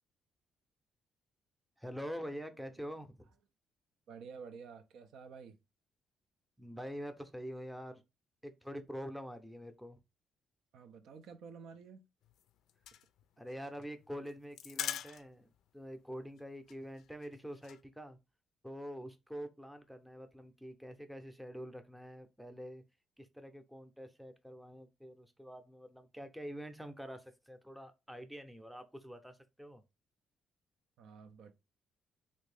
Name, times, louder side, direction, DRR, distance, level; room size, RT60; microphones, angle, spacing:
voice 1, 1.8-3.3 6.6-8.0 8.4-10.0 13.4-18.2 18.6-22.8 23.2-29.8, equal, 5° right, 0.6 m, -46 dB
voice 2, 4.1-5.6 10.7-12.0 31.0-31.5, right 5 dB, 80° right, 0.4 m, -51 dB
sound 1, 12.2-15.6 15.8-15.9 16.2-16.4 16.7-17.8, left 10 dB, 80° left, 0.3 m, -43 dB
3.1 x 2.6 x 3.3 m
cardioid pair, 90°, 0 cm